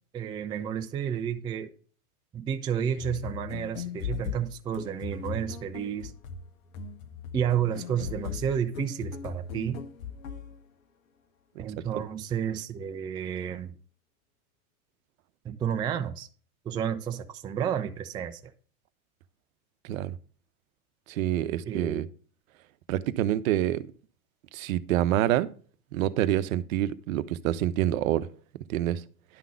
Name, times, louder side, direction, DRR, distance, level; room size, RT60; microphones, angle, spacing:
voice 1, 0.1-1.7 2.3-6.1 7.3-9.8 11.6-13.7 15.4-16.3 16.7-18.4 21.6-22.0, right 8 dB, 10° right, 0.3 m, -31 dB
sound 1, 3.0-10.6, left 5 dB, 65° left, 1.3 m, -38 dB
voice 2, 21.1-22.1 22.9-23.8 24.5-25.5 25.9-28.3 28.7-29.0, right 13 dB, 65° right, 0.8 m, -27 dB
10.5 x 3.8 x 7.0 m
hypercardioid pair, 100°, 44 cm